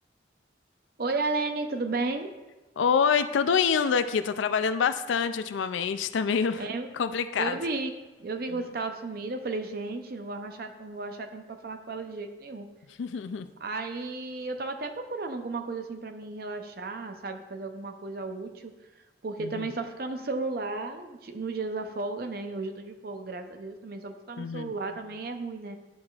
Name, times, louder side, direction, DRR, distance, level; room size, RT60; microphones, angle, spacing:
voice 1, 1.0-2.3 6.6-6.9 7.4-12.7 13.6-18.7 19.2-25.8, right 3 dB, 50° right, 6 dB, 0.6 m, -34 dB
voice 2, 2.8-6.6 6.9-7.6 13.0-13.5 19.4-19.7 24.4-24.7, left 6 dB, 80° left, 11 dB, 0.4 m, -26 dB
11.0 x 4.9 x 2.4 m, 1.1 s
head